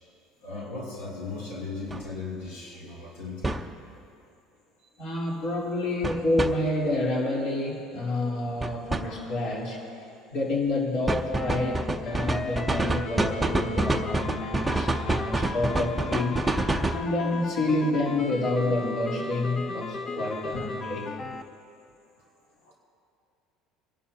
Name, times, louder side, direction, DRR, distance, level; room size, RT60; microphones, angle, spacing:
voice 1, 0.4-3.6 4.8-4.9 22.6-22.7, left 3 dB, 90° left, -5 dB, 3.0 m, -37 dB
sound 1, 1.9-2.0 3.4-3.7 6.0-6.5 8.6-9.0 11.1-17.0, right 2 dB, 10° right, 0.7 m, -26 dB
voice 2, 5.0-16.4 16.9-21.1, left 2 dB, 55° left, -4 dB, 3.7 m, -28 dB
sound 2, 11.3-21.4, left 4 dB, 40° left, 0.8 m, -36 dB
26.0 x 11.5 x 2.9 m, 2.5 s
cardioid pair, 125°, 0 cm